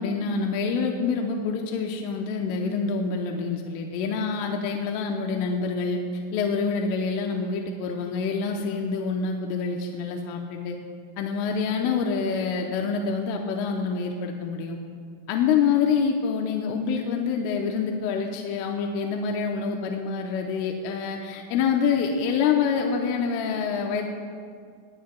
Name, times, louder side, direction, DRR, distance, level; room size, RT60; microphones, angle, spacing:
voice 1, 0.0-6.0 6.3-10.8 11.2-14.8 15.3-24.1, left 5 dB, 85° left, 1 dB, 3.3 m, -26 dB
21.0 x 18.0 x 2.3 m, 2.2 s
omnidirectional pair, 5.7 m